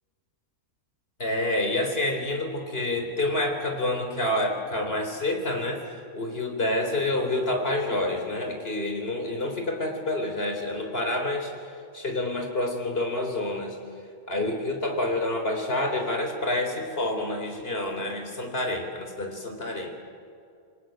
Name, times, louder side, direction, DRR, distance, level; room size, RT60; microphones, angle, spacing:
voice 1, 1.2-11.5 11.9-13.8 14.3-20.0, left 1 dB, 40° left, 4 dB, 4.1 m, -28 dB
28.0 x 23.5 x 9.2 m, 2.4 s
omnidirectional pair, 1.5 m